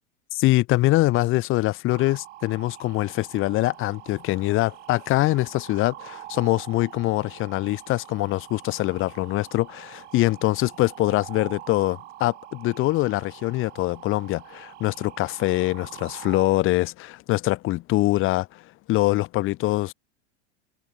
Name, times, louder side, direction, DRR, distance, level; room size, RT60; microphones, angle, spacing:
voice 1, 0.3-18.6 18.9-19.9, left 18 dB, 40° left, 0.6 m, -24 dB
sound 1, 1.9-16.5, right 16 dB, 80° right, 7.0 m, -44 dB
supercardioid pair, 115°, 34 cm